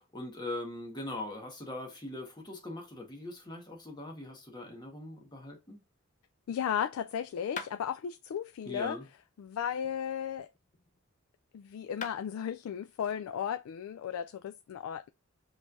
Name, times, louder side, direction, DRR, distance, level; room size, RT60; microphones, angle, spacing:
voice 1, 0.0-5.8 8.6-9.1, left 1 dB, 20° left, 1.4 m, -41 dB
voice 2, 6.5-9.0 9.4-10.5 11.5-15.1, left 8 dB, 80° left, 0.3 m, -35 dB
sound 1, 7.6-7.8 9.7-11.0 11.6-11.7 12.0-12.2, left 5 dB, 35° left, 0.6 m, -44 dB
5.2 x 3.3 x 2.5 m
head